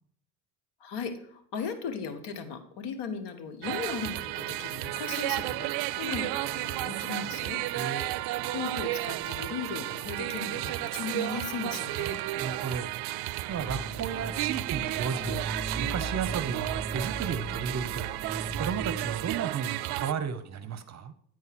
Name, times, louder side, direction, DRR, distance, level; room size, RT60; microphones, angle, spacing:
voice 1, 0.8-7.6 8.5-12.2, left 6 dB, 60° left, 9 dB, 1.5 m, -37 dB
sound 1, 3.6-20.1, right 17 dB, 60° right, 0.5 m, -33 dB
voice 2, 12.3-12.9 13.5-21.1, right 7 dB, 35° right, 12 dB, 0.8 m, -34 dB
sound 2, 13.5-19.3, right 2 dB, 5° right, 2.2 m, -38 dB
9.4 x 4.8 x 5.9 m, 0.63 s
hypercardioid pair, 75°, 46 cm